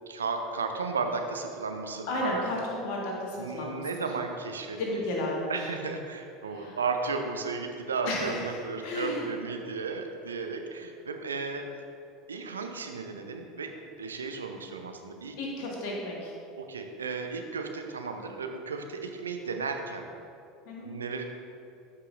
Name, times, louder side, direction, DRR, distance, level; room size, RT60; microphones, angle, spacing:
voice 1, 0.1-2.4 3.4-5.0 5.5-11.6 12.3-13.7 14.0-15.3 16.6-20.1 20.8-21.2, right 4 dB, 75° right, 4 dB, 0.6 m, -34 dB
voice 2, 2.1-3.8 4.8-5.5 6.5-6.8 8.0-9.3 15.4-16.3 20.6-20.9, left 1 dB, 55° left, -2 dB, 1.7 m, -33 dB
12.0 x 5.6 x 2.5 m, 2.5 s
figure-of-eight pair, 75°, 0 cm